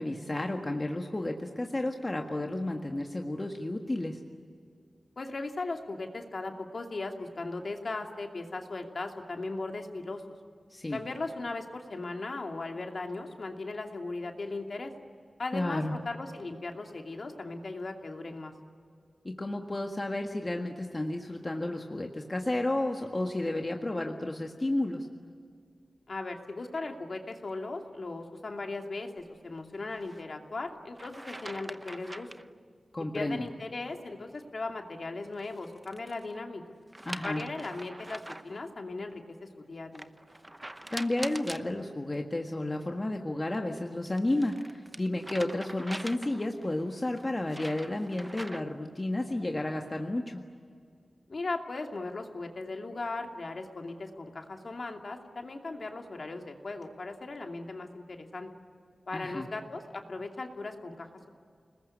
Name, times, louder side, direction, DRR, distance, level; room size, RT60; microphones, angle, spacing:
voice 1, 0.0-4.2 10.7-11.0 15.5-16.0 19.2-25.1 32.9-33.4 37.0-37.4 40.9-50.4 59.1-59.5, left 1 dB, 25° left, 2 dB, 1.7 m, -32 dB
voice 2, 5.2-10.2 10.9-14.9 15.4-18.5 26.1-32.3 33.1-36.6 37.2-40.1 51.3-58.5 59.1-61.3, left 3 dB, 55° left, 3 dB, 2.7 m, -38 dB
sound 1, 29.9-30.2 31.0-32.5 35.3-36.2 36.9-38.6 39.9-41.7 43.8-46.6 47.2-48.8, right 1 dB, 15° right, 0.9 m, -43 dB
29.0 x 20.5 x 9.9 m, 2.2 s
wide cardioid pair, 110°, 0 cm